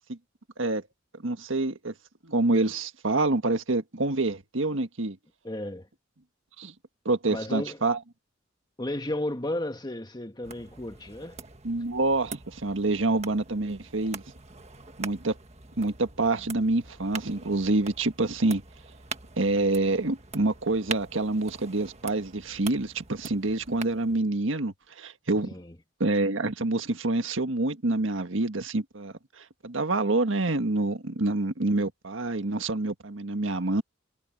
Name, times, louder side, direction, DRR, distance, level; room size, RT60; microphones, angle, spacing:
voice 1, 1.2-1.9 2.2-5.2 6.6-6.7 7.0-8.0 11.6-14.2 15.0-15.3 15.8-18.6 19.4-25.5 26.0-33.8, right 2 dB, 80° right, 1.6 m, -27 dB
voice 2, 5.4-5.9 7.3-7.8 8.8-11.4 25.4-25.7, left 1 dB, 20° left, 1.5 m, -33 dB
sound 1, 10.4-24.2, right 5 dB, 35° right, 1.6 m, -44 dB
head